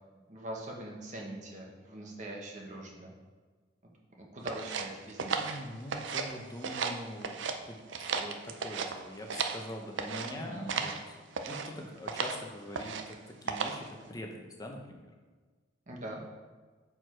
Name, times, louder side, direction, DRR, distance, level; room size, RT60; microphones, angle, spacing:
voice 1, 0.3-3.1 4.2-5.3 10.2-10.9 15.9-16.2, right 1 dB, 40° right, -1 dB, 1.0 m, -42 dB
sound 1, 4.5-6.3 6.6-7.6 7.9-9.6 10.0-10.3 10.7-11.0 11.3-11.7 12.1-12.4 12.7-13.1 13.5-13.9, right 5 dB, 75° right, 0.5 m, -34 dB
voice 2, 5.3-7.3 7.7-11.2 11.5-15.1, left 1 dB, 20° left, 2 dB, 0.7 m, -43 dB
6.4 x 4.7 x 4.5 m, 1.4 s
head